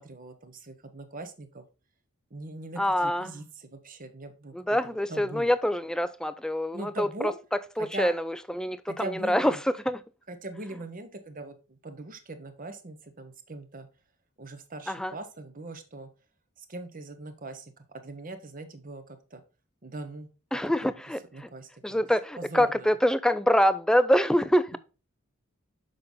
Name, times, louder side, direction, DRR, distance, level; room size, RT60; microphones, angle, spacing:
voice 1, 0.0-1.7 2.3-4.5 4.8-5.5 6.7-7.3 7.8-8.1 8.9-9.6 10.3-13.9 14.4-16.1 16.6-19.4 19.8-20.3 20.8-20.9 21.3-22.0 22.4-23.0, right 2 dB, 40° right, 1.0 m, -41 dB
voice 2, 2.8-3.3 4.5-7.1 7.8-10.0 14.9-15.1 20.5-21.5 21.8-24.8, equal, 5° left, 0.3 m, -25 dB
6.7 x 5.5 x 3.8 m
head